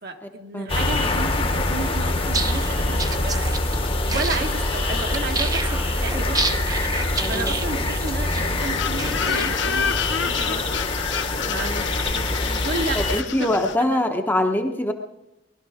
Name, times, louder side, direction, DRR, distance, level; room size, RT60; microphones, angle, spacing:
voice 1, 0.0-3.5 4.0-6.9 7.3-10.9 11.5-13.5 13.8-14.1, right 3 dB, 50° right, 4 dB, 1.4 m, -33 dB
sound 1, 0.7-13.2, left 2 dB, 30° left, 1.2 m, -24 dB
sound 2, 2.2-9.8, right 3 dB, 20° right, 0.8 m, -30 dB
voice 2, 7.2-7.6 11.4-11.8 12.9-14.9, left 1 dB, 10° left, 3 dB, 1.0 m, -24 dB
sound 3, 8.6-13.8, left 7 dB, 65° left, 0.6 m, -29 dB
19.5 x 12.5 x 5.0 m, 0.95 s
head